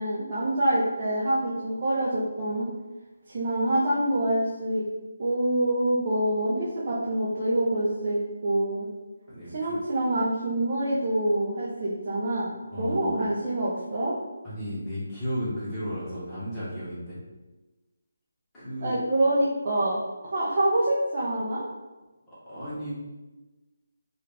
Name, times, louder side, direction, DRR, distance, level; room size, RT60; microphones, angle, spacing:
voice 1, 0.0-2.7 3.3-4.8 5.2-8.9 9.5-12.5 12.8-14.1 18.8-21.7, right 1 dB, 35° right, -7 dB, 0.6 m, -26 dB
voice 2, 9.3-9.8 12.7-13.3 14.4-17.2 18.5-19.0 22.3-22.9, equal, 10° left, -12 dB, 1.1 m, -34 dB
3.6 x 2.4 x 3.3 m, 1.1 s
hypercardioid pair, 170°, 0 cm